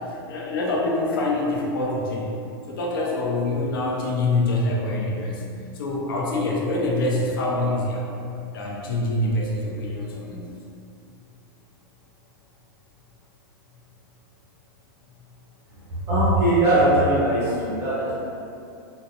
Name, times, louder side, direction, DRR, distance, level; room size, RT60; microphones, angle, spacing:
voice 1, 0.3-2.3 2.7-5.4 5.7-8.1 8.5-10.5, left 2 dB, 70° left, -3 dB, 0.7 m, -25 dB
voice 2, 16.1-18.2, right 1 dB, 20° right, -9 dB, 0.5 m, -20 dB
3.8 x 2.1 x 2.8 m, 2.6 s
supercardioid pair, 175°, 12 cm